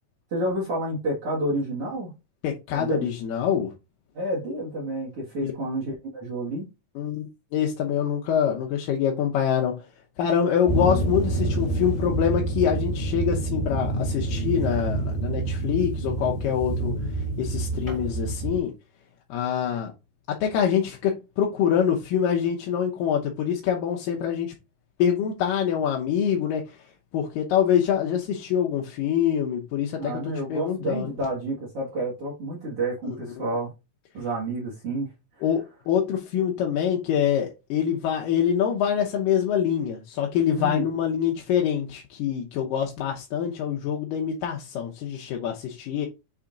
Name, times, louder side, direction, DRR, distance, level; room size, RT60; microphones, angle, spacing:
voice 1, 0.3-2.1 2.7-3.1 4.1-6.7 30.0-33.7 34.1-35.1 40.6-40.9, right 1 dB, 50° right, 2.4 m, -29 dB
voice 2, 2.4-3.7 5.4-5.5 7.0-9.8 10.2-18.7 19.3-19.9 20.3-24.5 25.0-26.8 27.1-31.1 33.0-33.5 35.4-46.1, left 8 dB, 80° left, 2.5 m, -25 dB
sound 1, 10.7-18.6, right 2 dB, 20° left, 2.4 m, -27 dB
7.2 x 3.6 x 3.8 m
omnidirectional pair, 3.9 m